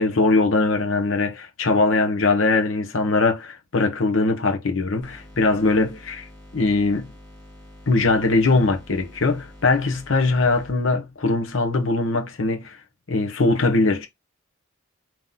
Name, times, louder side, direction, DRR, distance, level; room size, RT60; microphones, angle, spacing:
voice 1, 0.0-6.3 6.5-7.1 7.9-12.8 13.1-14.1, left 3 dB, 65° left, 0.9 m, -21 dB
sound 1, 5.0-10.7, left 1 dB, 15° left, 1.9 m, -46 dB
3.9 x 3.0 x 3.6 m
head